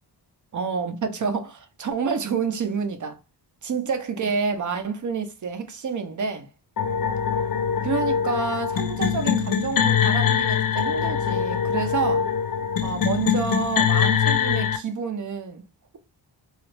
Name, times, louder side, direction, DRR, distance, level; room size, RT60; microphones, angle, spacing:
voice 1, 0.5-3.2 3.6-6.5 7.8-12.3 12.8-15.6, right 5 dB, 45° right, 0.5 m, -28 dB
sound 1, 6.8-14.8, left 7 dB, 50° left, 0.5 m, -23 dB
2.9 x 2.4 x 3.1 m
wide cardioid pair, 165°, 43 cm